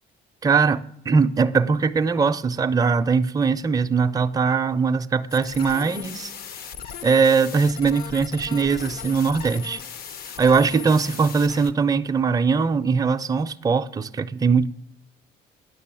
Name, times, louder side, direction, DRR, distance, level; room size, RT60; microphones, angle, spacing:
voice 1, 0.4-6.3 7.0-9.8 10.4-14.7, right 5 dB, 20° right, 0.5 m, -21 dB
sound 1, 5.3-11.7, left 7 dB, 65° left, 0.7 m, -37 dB
9.8 x 6.6 x 7.6 m
cardioid pair, 110°, 17 cm